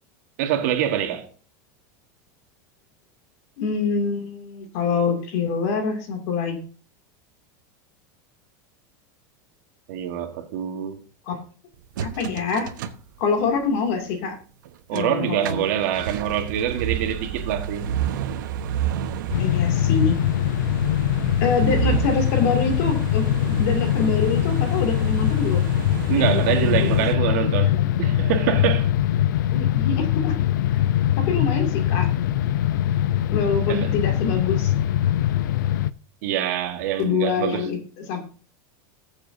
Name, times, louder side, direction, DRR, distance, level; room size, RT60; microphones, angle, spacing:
voice 1, 0.4-1.3 9.9-11.0 14.9-17.8 26.1-27.7 28.0-28.9 33.7-33.9 36.2-37.7, right 10 dB, 55° right, 1.5 m, -25 dB
voice 2, 3.6-6.6 11.3-11.4 12.0-12.7 13.2-14.4 14.9-15.6 19.4-20.2 21.4-25.7 26.1-26.9 27.7-27.9 29.5-30.4 30.7-30.8 31.2-32.1 33.3-34.7 37.0-37.8 38.1-38.2, left 4 dB, 45° left, 2.5 m, -25 dB
sound 1, 12.0-13.6 14.1-14.2 14.7-15.0 15.3-27.1, right 8 dB, 90° right, 1.1 m, -30 dB
sound 2, 19.3-35.9, left 12 dB, 90° left, 0.5 m, -22 dB
19.5 x 7.2 x 2.7 m
supercardioid pair, 180°, 10 cm